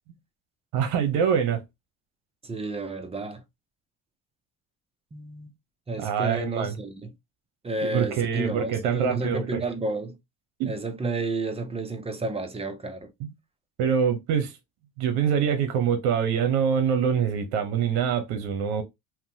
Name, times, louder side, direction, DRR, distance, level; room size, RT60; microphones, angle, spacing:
voice 1, 0.7-1.6 6.0-6.7 7.9-9.6 10.6-10.7 13.2-13.3 13.8-14.6 15.0-18.8, right 7 dB, 80° right, 0.7 m, -25 dB
voice 2, 2.4-3.4 5.1-5.5 5.9-7.1 7.6-10.2 10.7-13.1, right 3 dB, 15° right, 0.5 m, -31 dB
2.8 x 2.1 x 2.6 m
supercardioid pair, 85°, 40 cm